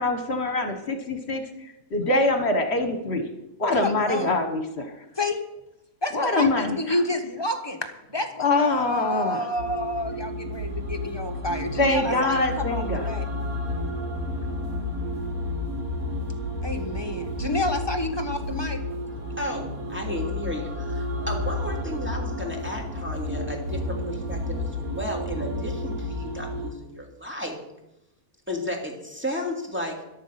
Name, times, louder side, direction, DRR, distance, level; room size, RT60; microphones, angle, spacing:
voice 1, 0.0-1.4 1.9-3.2 3.6-4.9 6.1-7.0 8.4-9.4 11.8-13.1, left 2 dB, 45° left, 6 dB, 1.8 m, -24 dB
voice 2, 3.7-4.4 5.2-5.4 6.0-13.3 16.6-18.8, left 1 dB, 20° left, 4 dB, 1.4 m, -29 dB
sound 1, 9.6-26.7, left 1 dB, 80° right, 2.4 m, -31 dB
voice 3, 19.4-27.6 28.5-30.0, left 1 dB, 10° right, 0 dB, 2.8 m, -33 dB
13.5 x 12.0 x 6.0 m, 0.87 s
omnidirectional pair, 1.5 m